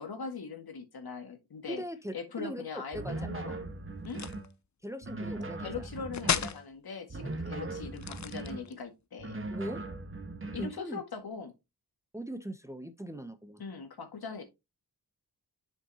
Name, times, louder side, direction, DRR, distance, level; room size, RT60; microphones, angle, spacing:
voice 1, 0.0-1.8 2.1-3.6 4.0-4.2 5.6-9.4 10.5-11.5 13.6-14.4, left 5 dB, 65° left, 2.0 m, -41 dB
voice 2, 1.7-2.6 2.9-3.1 4.8-5.9 7.5-7.8 9.5-9.8 10.6-11.0 12.1-13.6, right 1 dB, 5° right, 0.8 m, -40 dB
sound 1, 2.9-4.5 5.0-6.6 7.1-8.7 9.2-10.8, right 2 dB, 30° right, 1.4 m, -39 dB
sound 2, 4.0-4.5 6.1-6.6 7.9-8.8, left 7 dB, 45° left, 0.7 m, -33 dB
7.8 x 6.5 x 2.8 m
wide cardioid pair, 110°, 39 cm